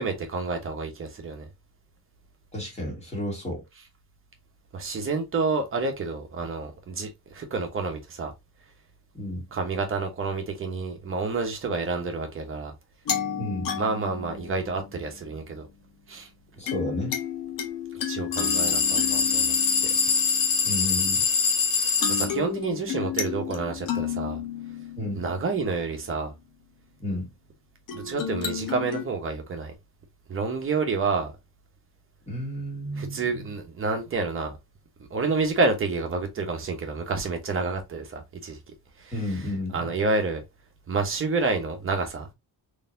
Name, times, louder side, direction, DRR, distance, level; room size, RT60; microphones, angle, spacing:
voice 1, 0.0-1.5 4.7-8.3 9.5-12.7 13.8-15.6 16.1-16.3 18.1-19.5 22.1-24.4 25.2-26.3 27.9-29.7 30.3-31.3 33.0-34.5 35.1-38.6 39.0-39.1 39.7-40.4 40.9-42.3, right 3 dB, 30° right, 1.0 m, -29 dB
voice 2, 2.5-3.6 9.1-9.4 13.4-13.7 16.5-17.2 20.6-21.2 25.0-25.2 27.0-27.3 32.3-33.5 39.1-39.9, left 1 dB, 15° left, 1.7 m, -32 dB
sound 1, 13.1-15.3 16.7-21.4 22.0-26.2 27.9-29.0, left 8 dB, 55° left, 1.0 m, -33 dB
sound 2, 18.3-22.3, left 5 dB, 35° left, 0.6 m, -23 dB
4.0 x 3.2 x 2.6 m
cardioid pair, 175°, 39 cm